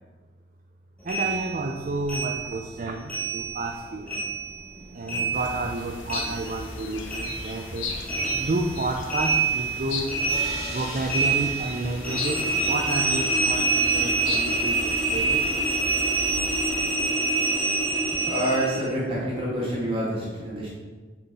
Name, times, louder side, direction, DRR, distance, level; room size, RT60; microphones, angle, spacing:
voice 1, 1.0-4.1 4.9-7.9 8.4-10.1 10.7-15.4, right 2 dB, 40° right, 3 dB, 0.4 m, -30 dB
sound 1, 1.1-3.8 4.1-6.8 7.1-18.9, right 3 dB, 5° left, 1.3 m, -27 dB
sound 2, 5.3-16.7, left 3 dB, 80° left, 0.8 m, -37 dB
sound 3, 10.3-14.1, left 2 dB, 35° left, 1.9 m, -40 dB
voice 2, 18.3-20.7, right 1 dB, 25° right, -6 dB, 2.2 m, -27 dB
6.2 x 5.1 x 4.6 m, 1.4 s
head